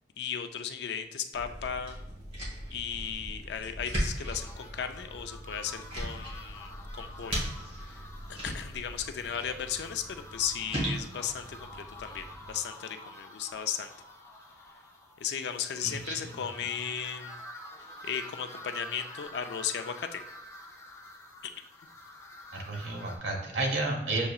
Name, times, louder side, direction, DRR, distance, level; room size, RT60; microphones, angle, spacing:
voice 1, 0.2-2.0 2.7-7.4 7.8-8.1 8.4-13.9 15.2-17.4 18.0-20.2, left 8 dB, 70° left, 7 dB, 0.4 m, -36 dB
sound 1, 1.3-12.6, equal, 35° right, 1.2 m, -38 dB
sound 2, 4.1-23.2, left 1 dB, 15° left, 0.5 m, -48 dB
voice 2, 15.8-16.3 22.5-24.3, right 2 dB, 80° right, 0 dB, 1.1 m, -32 dB
6.5 x 2.8 x 2.4 m, 0.90 s
head